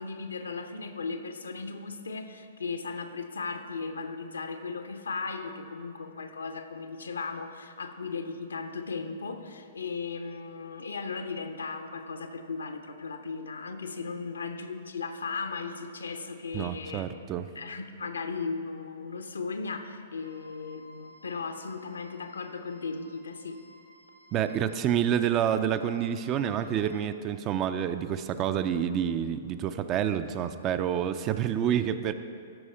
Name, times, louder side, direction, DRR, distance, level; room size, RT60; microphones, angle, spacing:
voice 1, 0.0-17.1 17.5-23.6, left 4 dB, 85° left, 7 dB, 0.7 m, -36 dB
voice 2, 16.5-17.5 24.3-32.1, right 9 dB, 30° right, 11 dB, 0.4 m, -28 dB
sound 1, 20.2-27.0, right 1 dB, 90° right, 1.3 m, -56 dB
12.5 x 4.9 x 4.2 m, 2.4 s
hypercardioid pair, 120°, 0 cm